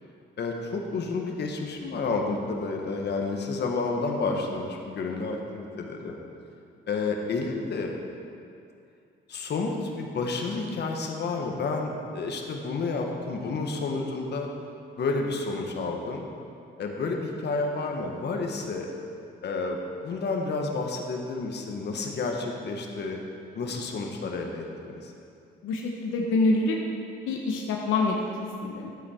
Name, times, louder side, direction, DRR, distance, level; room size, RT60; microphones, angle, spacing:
voice 1, 0.4-6.2 6.9-7.9 9.3-14.5 15.0-16.2 16.8-18.9 19.4-23.2 23.5-25.1, left 3 dB, 60° left, 2 dB, 1.4 m, -30 dB
voice 2, 25.6-26.8 27.3-28.9, left 2 dB, 90° left, 0 dB, 1.0 m, -26 dB
12.0 x 8.5 x 4.5 m, 2.5 s
cardioid pair, 90°, 20 cm